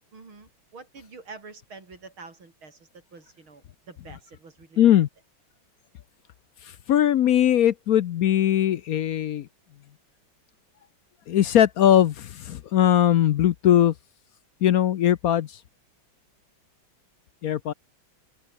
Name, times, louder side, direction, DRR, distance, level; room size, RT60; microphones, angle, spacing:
voice 1, 0.1-5.0, right 4 dB, 85° right, 5.3 m, -47 dB
voice 2, 4.8-5.1 6.6-9.5 11.3-13.9 14.6-15.6 17.4-17.7, left 11 dB, 65° left, 0.9 m, -20 dB
open air
omnidirectional pair, 2.2 m